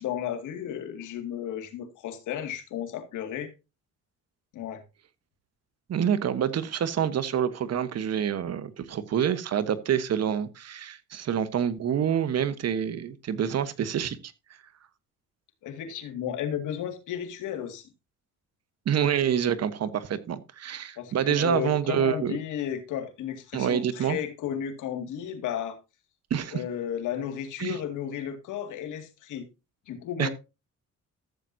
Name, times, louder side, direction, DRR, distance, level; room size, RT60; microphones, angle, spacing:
voice 1, 0.0-3.5 4.5-4.8 15.6-17.9 21.0-25.8 26.5-29.5 29.9-30.3, left 9 dB, 85° left, 2.1 m, -33 dB
voice 2, 5.9-14.3 18.8-22.4 23.5-24.2 26.3-26.6 27.6-27.8 30.2-30.3, right 9 dB, 55° right, 1.2 m, -27 dB
14.0 x 7.6 x 2.7 m
cardioid pair, 90°, 30 cm